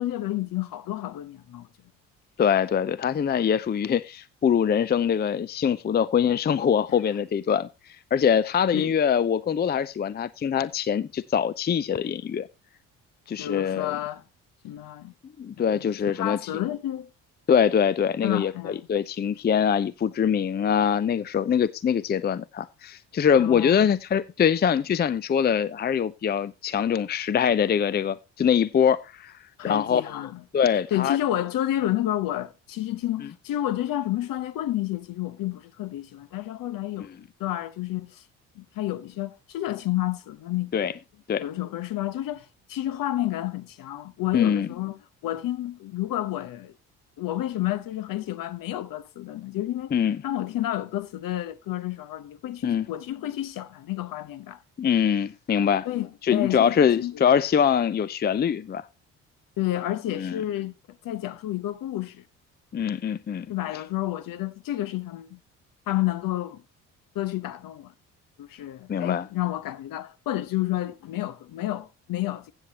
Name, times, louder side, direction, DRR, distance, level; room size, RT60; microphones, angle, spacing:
voice 1, 0.0-1.7 8.7-8.9 13.4-14.2 14.6-15.1 15.6-15.9 16.2-17.1 18.2-18.9 23.4-23.9 29.6-30.4 30.9-38.2 38.5-40.9 41.4-46.7 47.2-50.0 50.2-54.6 55.8-57.2 59.6-62.2 63.5-65.4 65.9-66.6 67.1-67.9 68.4-72.5, left 14 dB, 60° left, 1.1 m, -30 dB
voice 2, 2.4-7.7 8.1-12.5 13.3-14.0 15.4-16.6 17.5-29.3 29.6-30.0 30.5-31.2 40.7-40.9 41.3-41.4 44.3-44.7 49.9-50.2 52.6-52.9 54.8-55.9 56.2-58.9 60.1-60.4 62.7-63.5 68.9-69.3, left 8 dB, 25° left, 0.6 m, -23 dB
15.5 x 8.1 x 2.9 m
hypercardioid pair, 55°, 39 cm